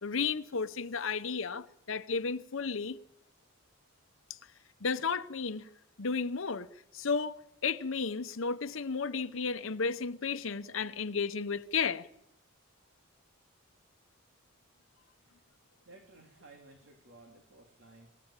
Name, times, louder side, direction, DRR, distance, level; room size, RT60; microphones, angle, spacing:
voice 1, 0.0-3.0 4.8-5.7 6.0-6.7 6.9-12.1, left 5 dB, 65° left, 0.9 m, -33 dB
voice 2, 15.0-15.4 15.8-18.1, right 2 dB, 60° right, 3.2 m, -57 dB
26.0 x 16.0 x 8.9 m
head